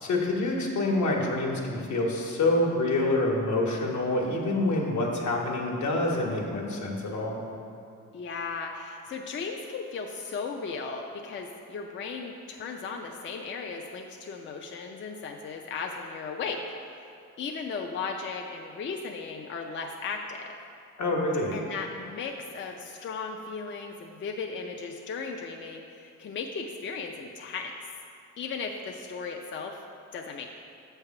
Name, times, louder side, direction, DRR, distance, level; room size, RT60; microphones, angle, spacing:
voice 1, 0.0-7.4 21.0-21.5, left 2 dB, 70° left, -1 dB, 1.2 m, -27 dB
voice 2, 8.1-17.1 17.4-20.6 21.5-27.7 28.4-29.8 30.1-30.5, left 4 dB, 40° left, 2 dB, 0.4 m, -36 dB
7.1 x 3.4 x 5.7 m, 2.5 s
cardioid pair, 90°, 30 cm